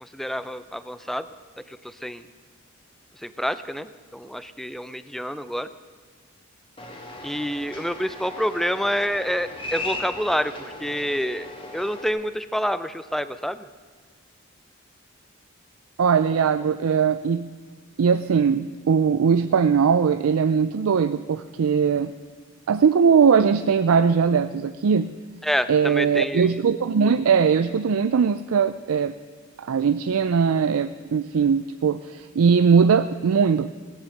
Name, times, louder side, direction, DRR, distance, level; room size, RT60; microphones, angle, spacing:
voice 1, 0.0-1.3 1.7-2.2 3.2-5.7 7.2-11.5 11.7-13.7 25.4-26.6, equal, ahead, 13 dB, 0.4 m, -28 dB
sound 1, 6.8-12.1, left 2 dB, 25° left, 1.6 m, -37 dB
voice 2, 16.0-17.5 18.0-22.1 22.7-25.1 25.7-29.1 29.6-33.7, right 6 dB, 85° right, 12 dB, 0.4 m, -20 dB
17.5 x 10.0 x 6.5 m, 1.5 s
head